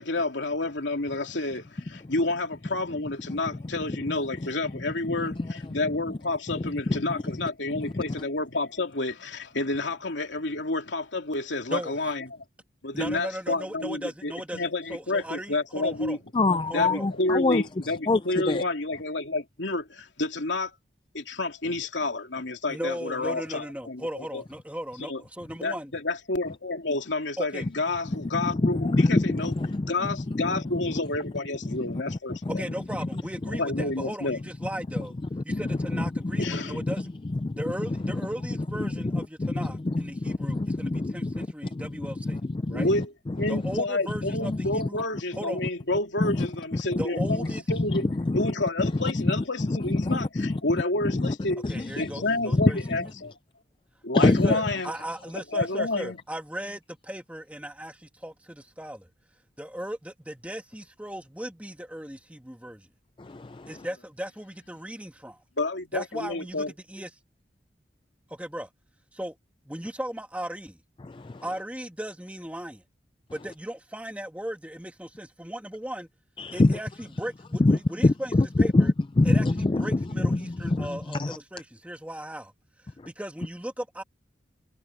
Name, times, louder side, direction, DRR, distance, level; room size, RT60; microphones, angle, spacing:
voice 1, 0.0-12.4 12.8-16.2 16.7-20.7 21.1-24.4 25.0-25.2 25.6-29.5 29.9-32.6 33.6-34.4 36.4-36.8 42.7-43.1 43.4-48.1 48.3-53.3 54.0-54.9 55.5-56.2 65.6-66.7, left 2 dB, 85° left, 2.9 m, -30 dB
voice 2, 6.6-7.2 7.7-8.0 16.3-17.6 18.1-18.2 18.5-18.6 28.4-30.4 31.6-32.6 33.7-33.8 35.3-36.0 36.3-36.9 37.4-37.6 38.0-38.2 38.7-41.5 41.7-43.6 44.4-44.9 46.2-46.5 47.0-47.3 47.7-48.5 48.8-50.8 51.1-51.3 51.6-52.1 52.5-52.7 54.1-54.6 63.2-63.9 71.0-71.4 76.4-76.8 77.6-81.4, left 2 dB, 25° left, 0.4 m, -26 dB
voice 3, 11.7-12.1 12.9-16.2 16.7-17.1 22.7-25.9 27.4-27.7 32.5-35.1 35.4-37.1 37.6-42.4 42.7-42.9 43.5-45.0 45.3-45.6 47.0-47.6 51.7-52.8 54.2-59.1 59.6-62.9 63.7-65.4 65.9-67.1 68.3-68.7 69.1-69.4 69.6-70.8 71.4-72.8 73.3-76.1 76.5-78.9 79.2-82.5 83.1-84.0, equal, 10° right, 2.0 m, -37 dB
head